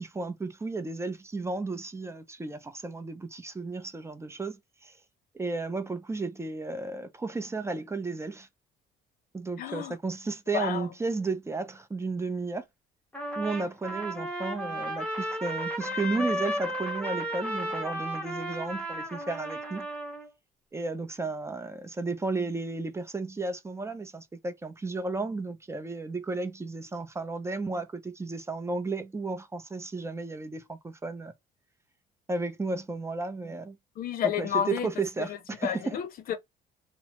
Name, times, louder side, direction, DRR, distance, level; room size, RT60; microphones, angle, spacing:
voice 1, 0.0-4.9 5.3-8.5 9.3-12.6 13.4-19.9 20.7-31.3 32.3-33.8 34.4-36.0, right 3 dB, 15° right, 0.5 m, -33 dB
voice 2, 9.6-10.0 10.5-10.8 34.0-34.9 35.6-36.4, left 9 dB, 60° left, 0.6 m, -30 dB
Trumpet, 13.1-20.3, equal, 5° left, 1.1 m, -34 dB
3.0 x 2.0 x 2.9 m
cardioid pair, 110°, 17 cm